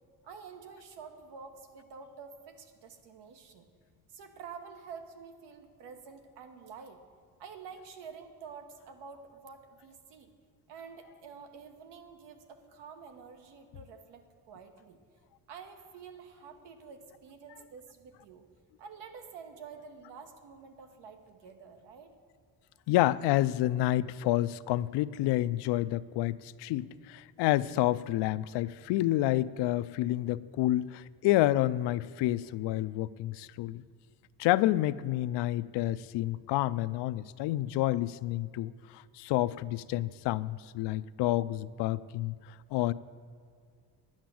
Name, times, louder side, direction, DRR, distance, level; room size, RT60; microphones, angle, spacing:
voice 1, 0.2-3.7 4.1-7.0 7.4-10.3 10.7-15.0 15.5-18.4 18.8-22.1, right 6 dB, 90° right, 6 dB, 1.5 m, -49 dB
voice 2, 22.9-33.8 34.4-42.3 42.7-42.9, left 15 dB, 80° left, 16 dB, 0.5 m, -29 dB
11.0 x 8.8 x 7.6 m, 2.2 s
cardioid pair, 180°, 41 cm